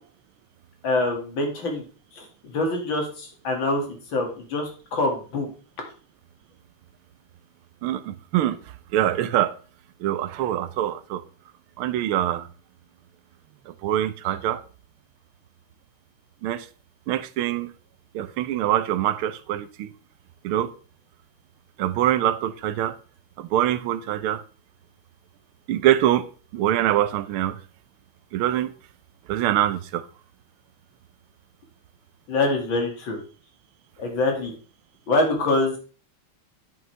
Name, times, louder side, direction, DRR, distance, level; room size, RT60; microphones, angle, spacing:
voice 1, 0.8-1.8 2.1-3.8 4.1-5.5 32.3-33.2 34.0-34.5 35.1-35.8, left 2 dB, 65° left, 2.8 m, -25 dB
voice 2, 7.8-8.6 8.9-9.5 10.0-11.2 11.8-12.5 13.7-14.6 16.4-16.7 17.1-17.7 18.1-19.9 20.4-20.7 21.8-22.9 23.4-24.4 25.7-27.6 28.3-28.7 29.3-30.0, right 12 dB, 85° right, 1.6 m, -24 dB
9.4 x 8.0 x 3.3 m
omnidirectional pair, 2.3 m